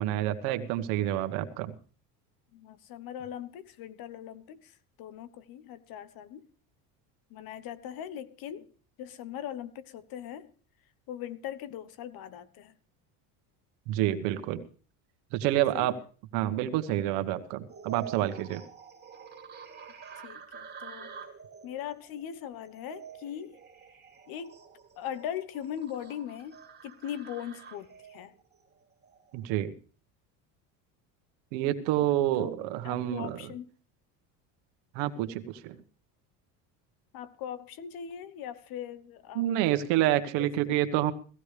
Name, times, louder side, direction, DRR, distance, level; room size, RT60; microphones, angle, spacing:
voice 1, 0.0-1.7 13.9-14.6 15.3-16.0 16.3-18.6 29.3-29.7 31.5-33.4 34.9-35.7 39.3-41.1, right 13 dB, 80° right, 10 dB, 1.4 m, -28 dB
voice 2, 2.5-6.5 7.3-8.7 9.0-10.5 11.1-12.7 15.7-16.0 20.2-21.1 21.6-23.6 24.3-24.6 24.9-28.3 32.0-32.5 32.8-33.7 37.1-39.4, left 10 dB, 60° left, 16 dB, 1.1 m, -40 dB
sound 1, 17.7-29.4, right 6 dB, 25° right, 2.7 m, -48 dB
17.5 x 15.5 x 3.4 m, 0.39 s
cardioid pair, 115°, 40 cm